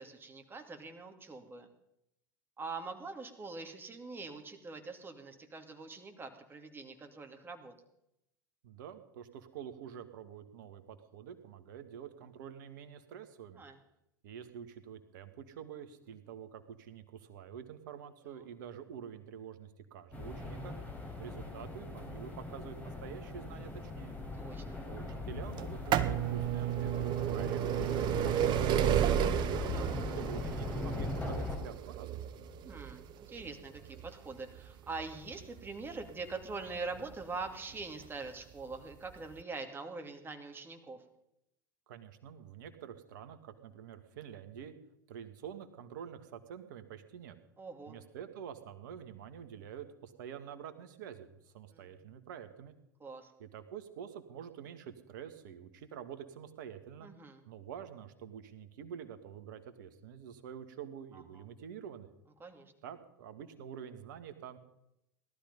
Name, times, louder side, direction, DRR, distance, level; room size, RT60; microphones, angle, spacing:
voice 1, 0.0-1.7 2.6-7.7 13.6-13.8 18.3-18.4 24.4-24.8 29.7-30.0 32.6-33.7 34.0-41.0 47.6-48.0 51.7-51.9 53.0-53.3 57.0-57.4 61.1-61.2 62.4-62.7, right 3 dB, 20° right, 5 dB, 2.6 m, -43 dB
voice 2, 8.6-13.6 14.2-20.8 21.2-24.2 24.9-29.5 30.1-32.3 41.9-44.7 45.1-47.4 47.9-52.8 53.4-57.1 57.5-62.1 62.8-64.6, right 8 dB, 65° right, 9 dB, 1.8 m, -47 dB
sound 1, 20.1-31.6, left 2 dB, 15° left, 4.6 m, -40 dB
sound 2, 25.6-37.2 38.0-38.1 39.1-39.2 39.4-39.5, right 10 dB, 45° right, 1.2 m, -32 dB
18.0 x 12.5 x 5.4 m, 0.82 s
figure-of-eight pair, 80°, 11 cm